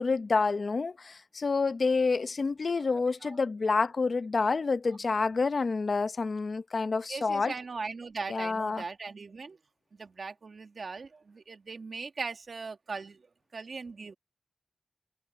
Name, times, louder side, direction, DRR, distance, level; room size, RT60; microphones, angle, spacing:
voice 1, 0.0-7.5 8.3-8.8, left 4 dB, 65° left, 0.8 m, -28 dB
voice 2, 7.1-9.6 9.9-13.2 13.5-14.1, right 4 dB, 75° right, 2.1 m, -39 dB
cardioid pair, 45°, 0 cm